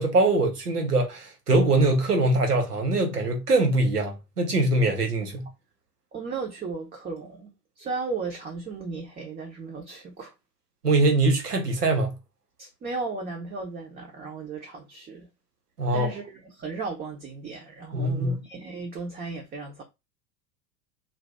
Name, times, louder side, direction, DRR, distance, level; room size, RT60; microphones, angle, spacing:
voice 1, 0.0-5.5 10.8-12.2 15.8-16.1 17.9-18.4, right 2 dB, 85° right, 1.0 m, -23 dB
voice 2, 6.1-10.3 12.6-15.3 15.9-19.8, right 4 dB, 20° right, 0.7 m, -35 dB
2.7 x 2.5 x 3.4 m
figure-of-eight pair, 85°, 46 cm